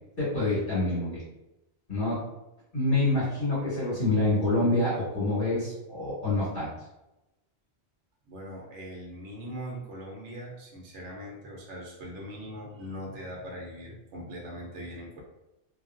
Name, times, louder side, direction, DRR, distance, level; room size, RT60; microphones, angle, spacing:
voice 1, 0.2-1.2 1.9-2.2 2.7-6.7, left 2 dB, 55° left, -11 dB, 1.6 m, -26 dB
voice 2, 8.3-15.2, equal, 80° right, -1 dB, 1.0 m, -41 dB
3.1 x 2.4 x 2.5 m, 0.95 s
omnidirectional pair, 1.2 m